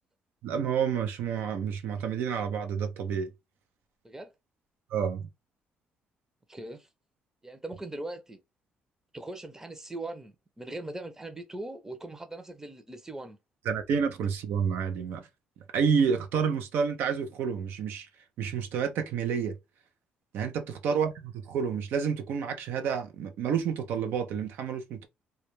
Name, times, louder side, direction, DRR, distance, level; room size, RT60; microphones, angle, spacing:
voice 1, 0.4-3.3 4.9-5.3 13.7-15.2 15.7-18.1 18.4-19.5 20.3-21.1 21.5-25.1, right 6 dB, 80° right, 0.4 m, -29 dB
voice 2, 6.5-6.9 7.4-8.4 9.1-13.4 20.8-21.0, right 2 dB, 15° right, 0.5 m, -40 dB
2.2 x 2.0 x 3.0 m
supercardioid pair, 70°, 4 cm